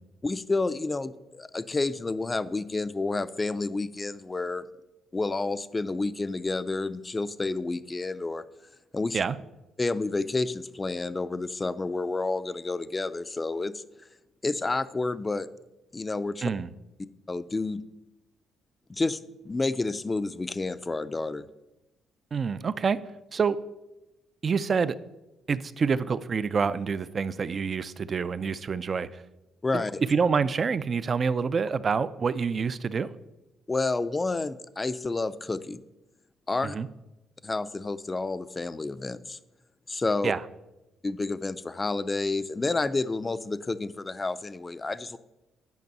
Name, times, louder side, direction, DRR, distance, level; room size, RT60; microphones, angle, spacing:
voice 1, 0.2-4.6 5.1-8.4 8.9-9.2 9.8-13.8 14.4-15.5 15.9-16.5 17.3-17.8 18.9-21.5 29.6-30.0 33.7-35.8 36.5-36.8 37.4-39.4 39.9-40.3 41.0-45.2, left 3 dB, 25° left, 13 dB, 0.4 m, -30 dB
voice 2, 22.3-23.0 23.3-23.6 24.4-25.0 25.5-29.2 29.7-29.8 30.1-33.1 36.6-36.9 40.2-40.4, right 5 dB, 45° right, 15 dB, 0.4 m, -27 dB
9.4 x 5.3 x 5.4 m, 0.99 s
cardioid pair, 85°, 0 cm